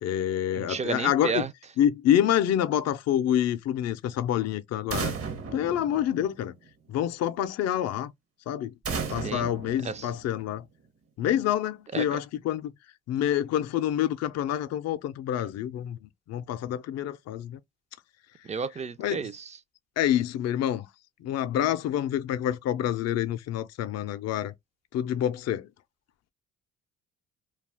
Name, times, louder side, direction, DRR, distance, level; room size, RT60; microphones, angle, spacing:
voice 1, 0.0-1.4 1.8-5.2 5.5-6.5 6.9-8.1 8.5-8.7 9.1-10.6 11.2-12.7 13.1-17.6 19.0-19.3 20.0-20.9 21.2-24.5 24.9-25.7, left 11 dB, 60° left, 0.4 m, -27 dB
voice 2, 0.5-1.5 9.2-9.5 9.8-10.1 11.9-12.2 18.4-19.5, right 5 dB, 25° right, 0.3 m, -32 dB
sound 1, 4.9-6.7 8.8-10.6, right 5 dB, 50° right, 0.7 m, -35 dB
2.4 x 2.2 x 3.3 m
cardioid pair, 90°, 30 cm